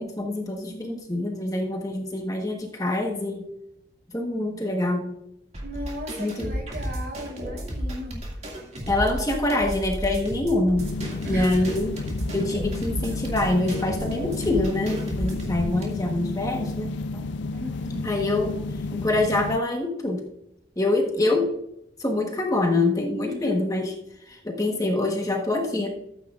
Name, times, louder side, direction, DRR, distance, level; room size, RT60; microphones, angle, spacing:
voice 1, 0.0-3.5 4.1-5.2 6.2-6.5 8.9-10.9 11.2-12.0 12.3-17.2 18.0-18.6 18.9-20.2 20.8-21.5 22.0-23.9 24.3-25.9, left 2 dB, 20° left, 1 dB, 1.2 m, -25 dB
sound 1, 5.5-15.8, equal, 40° right, 2.2 m, -33 dB
voice 2, 5.6-8.5 11.2-11.8 17.5-18.1 23.3-23.6, equal, 60° right, 1 dB, 3.7 m, -37 dB
sound 2, 10.8-19.6, left 3 dB, 90° left, 0.4 m, -32 dB
14.0 x 8.5 x 2.5 m, 0.78 s
head